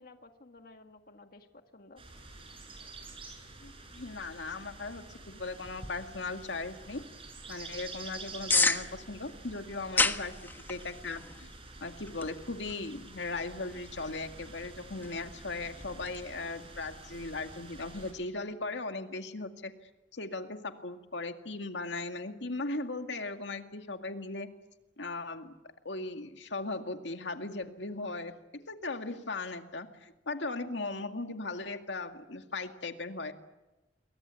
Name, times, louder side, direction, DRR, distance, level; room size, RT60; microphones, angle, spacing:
voice 1, 0.0-2.0, left 2 dB, 55° left, 6 dB, 1.8 m, -54 dB
sound 1, 2.0-18.1, right 3 dB, 30° right, 7.3 m, -49 dB
voice 2, 3.6-7.0 7.5-11.5 11.8-19.7 20.1-24.5 25.0-25.6 25.8-28.3 28.7-33.3, left 3 dB, 85° left, 6 dB, 2.1 m, -38 dB
sound 2, 5.6-16.2, left 3 dB, 10° left, 1.4 m, -36 dB
29.0 x 23.5 x 8.3 m, 1.0 s
head